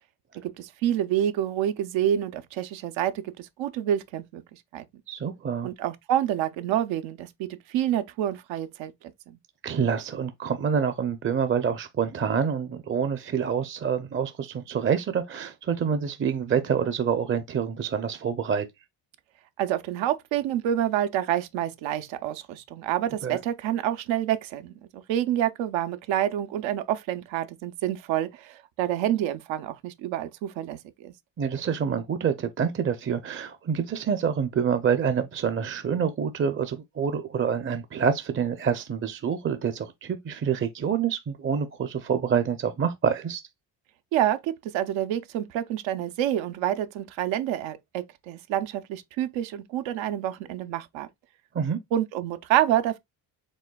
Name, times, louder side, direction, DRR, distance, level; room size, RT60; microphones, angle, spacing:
voice 1, 0.4-4.8 5.6-8.9 9.3-9.4 19.6-31.1 44.1-51.1 51.9-53.0, right 11 dB, 85° right, 0.7 m, -28 dB
voice 2, 5.1-5.7 9.6-18.7 23.2-23.4 31.4-43.4 51.5-51.8, right 7 dB, 30° right, 0.5 m, -27 dB
5.3 x 3.4 x 2.2 m
cardioid pair, 80°, 44 cm